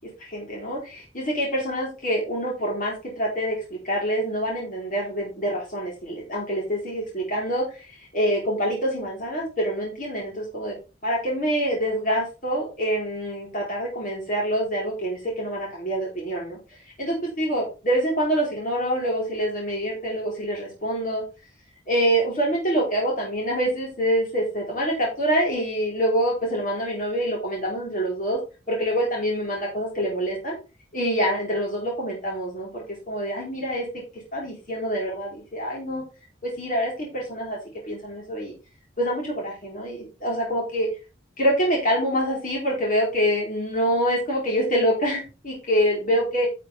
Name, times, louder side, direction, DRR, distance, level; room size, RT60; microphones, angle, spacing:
voice 1, 0.2-10.8 11.0-16.6 17.0-21.2 21.9-28.4 28.7-30.6 30.9-34.0 34.3-36.0 36.4-37.6 37.9-38.5 39.0-40.9 41.4-46.5, equal, 45° left, -3 dB, 4.5 m, -26 dB
10.5 x 6.5 x 3.6 m, 0.31 s
head